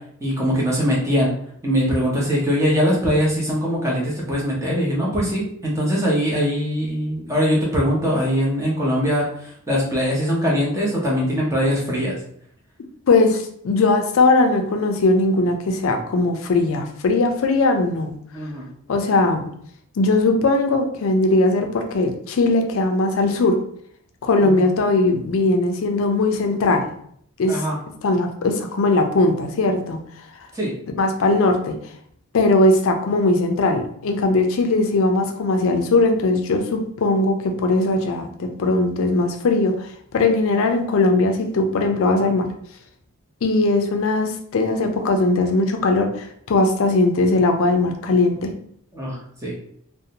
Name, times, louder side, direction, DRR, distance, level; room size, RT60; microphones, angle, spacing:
voice 1, 0.2-1.3 1.6-12.2 18.3-18.7 24.4-24.7 27.5-27.8 30.5-30.7 48.9-49.6, equal, 15° right, -4 dB, 0.6 m, -22 dB
voice 2, 13.1-18.1 18.9-19.5 20.0-23.6 24.2-26.9 27.4-27.6 28.0-30.0 31.0-31.8 32.3-42.5 43.4-48.5, left 2 dB, 65° left, 5 dB, 0.4 m, -19 dB
2.6 x 2.0 x 2.8 m, 0.66 s
head